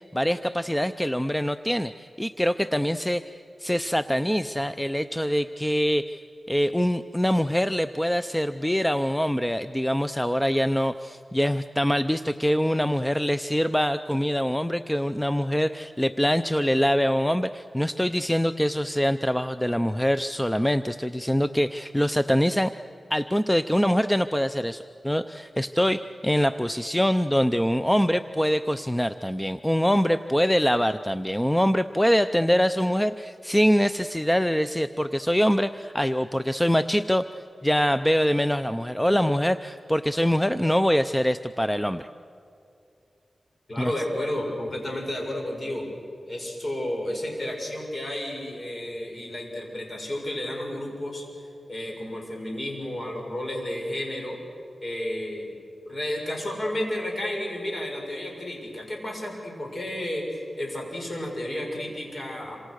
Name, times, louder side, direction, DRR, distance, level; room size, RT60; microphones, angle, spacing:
voice 1, 0.0-3.2 3.6-6.2 6.5-22.7 23.1-42.1 43.8-43.9, equal, 5° left, 11 dB, 0.6 m, -24 dB
voice 2, 43.7-45.9 46.3-51.2 51.7-54.4 54.8-55.6 55.9-62.6, left 1 dB, 45° left, 1 dB, 7.1 m, -32 dB
27.0 x 26.5 x 6.5 m, 2.6 s
wide cardioid pair, 70°, 0 cm